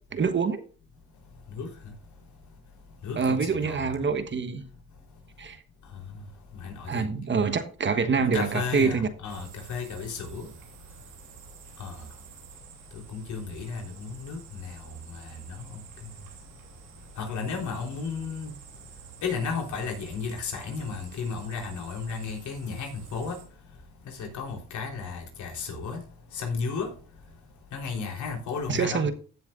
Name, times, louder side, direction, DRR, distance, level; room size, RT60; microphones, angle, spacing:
voice 1, 0.1-0.6 3.2-4.6 5.4-5.6 6.9-9.1 28.7-29.1, right 5 dB, 40° right, 1.2 m, -25 dB
voice 2, 3.0-3.9 6.6-7.1 8.2-10.5 11.8-12.0 12.9-15.8 17.2-18.5 19.2-23.4 24.1-26.0 26.3-26.9 27.7-29.1, left 5 dB, 70° left, 3.8 m, -34 dB
sound 1, 9.3-23.4, right 7 dB, 85° right, 3.0 m, -50 dB
15.5 x 7.2 x 2.5 m
cardioid pair, 90°, 30 cm